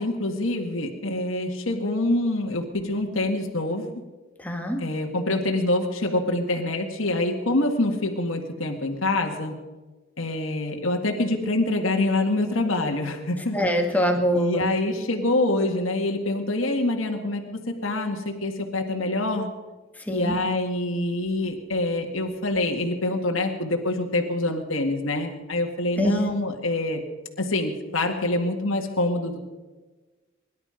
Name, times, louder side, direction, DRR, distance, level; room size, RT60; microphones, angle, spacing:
voice 1, 0.0-4.0 4.8-9.6 10.2-13.6 14.3-19.5 20.1-27.0 27.4-29.3, left 2 dB, 70° left, 2 dB, 2.0 m, -25 dB
voice 2, 4.4-4.8 13.5-14.7 20.1-20.4 26.0-26.3, equal, 10° left, 2 dB, 2.1 m, -24 dB
23.5 x 11.5 x 5.2 m, 1.2 s
head